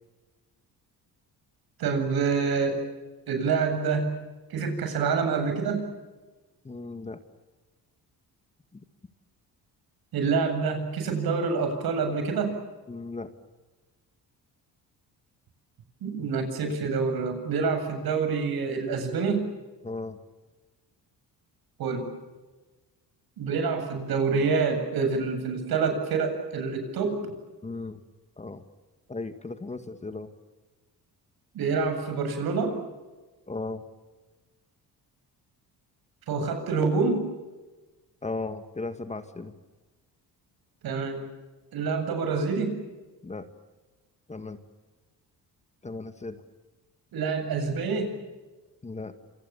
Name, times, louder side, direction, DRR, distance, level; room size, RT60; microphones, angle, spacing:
voice 1, 1.8-2.8 3.3-4.2 4.5-5.9 10.1-12.5 16.0-19.5 21.8-22.1 23.4-27.3 31.5-32.8 36.3-37.3 40.8-41.2 41.7-42.8 47.1-48.2, right 5 dB, 70° right, 7 dB, 7.9 m, -27 dB
voice 2, 6.6-7.2 12.9-13.3 19.8-20.2 27.6-28.0 28.4-28.6 29.1-30.3 33.5-33.8 38.2-39.5 43.2-43.5 44.3-44.6 45.8-46.4 48.8-49.1, left 3 dB, 20° left, 8 dB, 1.9 m, -36 dB
29.0 x 27.5 x 7.2 m, 1.2 s
cardioid pair, 130°, 38 cm